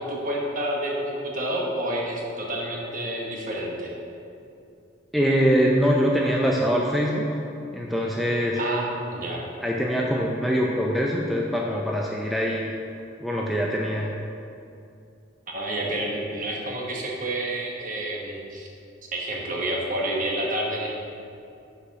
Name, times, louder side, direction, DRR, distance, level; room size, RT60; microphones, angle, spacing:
voice 1, 0.0-3.9 8.5-9.4 15.5-18.7 19.1-20.9, right 1 dB, 45° right, -2 dB, 1.1 m, -29 dB
voice 2, 5.1-7.3 7.7-8.6 9.6-12.7 13.2-14.1, equal, ahead, -3 dB, 0.4 m, -23 dB
6.6 x 4.8 x 5.9 m, 2.6 s
head